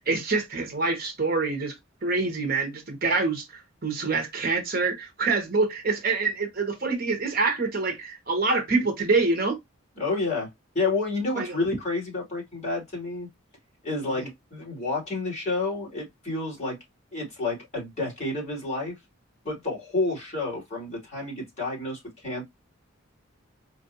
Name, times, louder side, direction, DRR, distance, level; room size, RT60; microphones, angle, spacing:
voice 1, 0.0-1.8 2.0-9.6 11.4-11.6 14.1-14.3, right 3 dB, 45° right, 1.0 m, -26 dB
voice 2, 10.0-13.3 13.8-16.8 17.1-18.9 19.4-22.4, left 3 dB, 35° left, 2.4 m, -30 dB
4.4 x 2.5 x 2.6 m
head